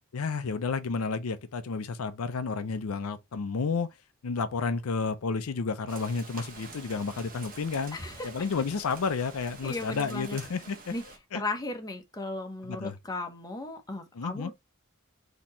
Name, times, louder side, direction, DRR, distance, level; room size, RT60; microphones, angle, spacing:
voice 1, 0.1-3.9 4.2-8.0 8.2-10.9 11.3-11.4 12.6-13.0 14.1-14.5, left 4 dB, 90° left, 0.5 m, -31 dB
Rain, 5.9-11.2, right 4 dB, 45° right, 1.1 m, -47 dB
voice 2, 7.9-8.3 9.6-10.4 10.9-11.0 11.3-14.5, left 2 dB, 20° left, 0.9 m, -36 dB
4.3 x 2.9 x 4.1 m
head